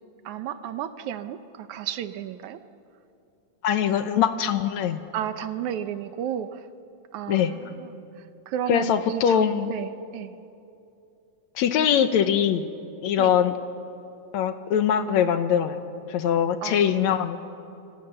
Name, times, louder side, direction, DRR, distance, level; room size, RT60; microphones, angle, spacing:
voice 1, 0.3-2.6 5.1-6.6 7.1-7.5 7.8-7.9 8.5-10.4 13.2-13.3 16.6-16.9, right 10 dB, 75° right, 11 dB, 2.2 m, -32 dB
voice 2, 3.6-5.0 7.3-7.5 8.7-9.8 11.6-12.7 13.0-13.5 14.3-15.8 16.1-17.4, left 9 dB, 70° left, 10 dB, 2.1 m, -22 dB
29.0 x 26.0 x 6.8 m, 2.7 s
omnidirectional pair, 3.6 m